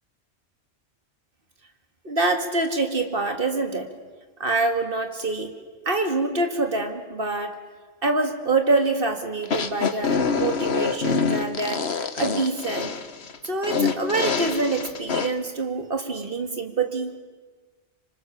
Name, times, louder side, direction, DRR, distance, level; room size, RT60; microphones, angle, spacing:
voice 1, 2.0-3.9 4.4-5.5 5.9-7.6 8.0-12.9 13.4-17.1, right 3 dB, 55° right, 5 dB, 2.3 m, -25 dB
sound 1, 9.4-15.3, left 5 dB, 70° left, 1.5 m, -25 dB
26.5 x 25.5 x 7.4 m, 1.4 s
omnidirectional pair, 1.1 m